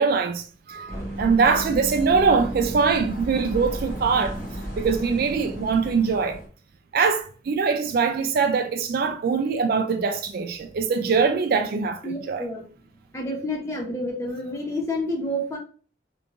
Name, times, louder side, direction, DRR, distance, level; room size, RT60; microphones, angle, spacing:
voice 1, 0.0-4.4 4.8-6.4 6.9-12.5, right 5 dB, 50° right, 0.3 m, -23 dB
sound 1, 0.9-6.5, right 1 dB, 45° left, 1.0 m, -34 dB
voice 2, 12.0-12.6 13.1-15.6, left 1 dB, 15° left, 0.9 m, -29 dB
3.4 x 3.0 x 2.6 m
head